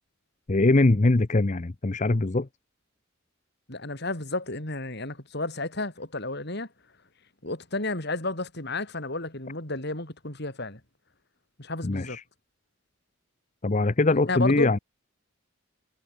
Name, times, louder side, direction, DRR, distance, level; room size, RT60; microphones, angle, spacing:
voice 1, 0.5-2.5 11.8-12.2 13.6-14.8, left 2 dB, 35° left, 0.7 m, -22 dB
voice 2, 3.7-6.7 7.4-10.8 11.6-12.2 14.2-14.7, left 2 dB, 55° left, 4.6 m, -32 dB
head